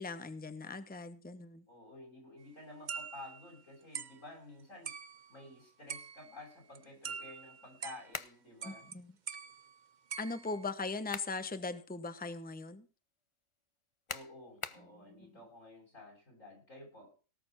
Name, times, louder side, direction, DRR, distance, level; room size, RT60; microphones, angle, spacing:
voice 1, 0.0-1.6 8.6-9.1 10.2-12.9 14.9-15.3, left 3 dB, 10° left, 11 dB, 1.0 m, -40 dB
voice 2, 1.7-4.9 5.3-8.9 14.1-17.1, left 2 dB, 75° left, -1 dB, 7.7 m, -52 dB
sound 1, 2.9-3.6 3.9-4.3 4.8-5.5 5.9-6.5 6.7-8.3 8.6-9.0 9.3-10.7, right 6 dB, 40° right, 0.7 m, -45 dB
sound 2, 8.1-8.4 10.8-11.4 11.9-12.0 14.1-14.9, left 5 dB, 30° left, 0.6 m, -42 dB
18.0 x 6.9 x 6.2 m, 0.36 s
omnidirectional pair, 1.4 m